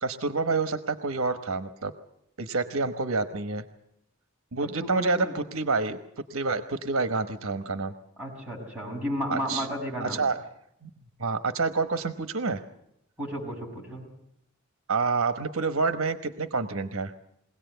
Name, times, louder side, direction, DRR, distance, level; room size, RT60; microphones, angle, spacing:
voice 1, 0.0-1.9 2.4-3.6 4.5-6.0 6.3-7.9 9.3-9.7 10.0-10.4 10.8-10.9 11.2-12.6 14.9-17.1, right 4 dB, 75° right, 10 dB, 1.1 m, -28 dB
voice 2, 4.8-5.3 8.2-10.2 13.2-14.0, equal, 5° right, -3 dB, 6.4 m, -33 dB
23.0 x 17.5 x 8.0 m, 0.79 s
head